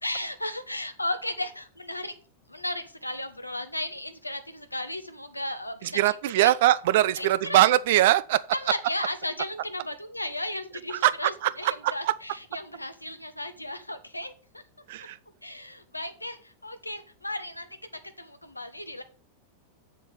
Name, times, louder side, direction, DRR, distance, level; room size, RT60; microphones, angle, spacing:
voice 1, 0.0-2.1 2.5-6.2 6.4-6.6 7.2-7.8 8.5-14.6 15.4-17.7 18.2-19.0, left 1 dB, 85° left, 1.2 m, -35 dB
voice 2, 5.8-8.4 11.0-12.1 14.9-15.2, right 14 dB, 55° right, 0.6 m, -22 dB
8.2 x 7.0 x 5.6 m
figure-of-eight pair, 90°, 0 cm